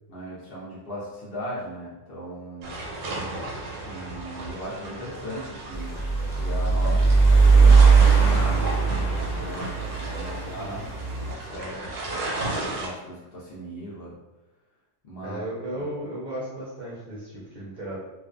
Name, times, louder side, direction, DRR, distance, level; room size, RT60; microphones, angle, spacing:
voice 1, 0.1-2.7 3.9-9.0 9.3-12.0 12.6-14.1 15.0-15.4 15.7-15.9, equal, 60° left, -6 dB, 0.7 m, -38 dB
sound 1, 2.6-12.9, right 2 dB, 90° right, 1.0 m, -34 dB
sound 2, 5.7-11.3, right 4 dB, 85° left, 1.0 m, -19 dB
voice 2, 10.4-10.8 15.2-18.0, right 1 dB, 50° right, -8 dB, 0.6 m, -35 dB
2.4 x 2.2 x 2.4 m, 1.0 s
omnidirectional pair, 1.3 m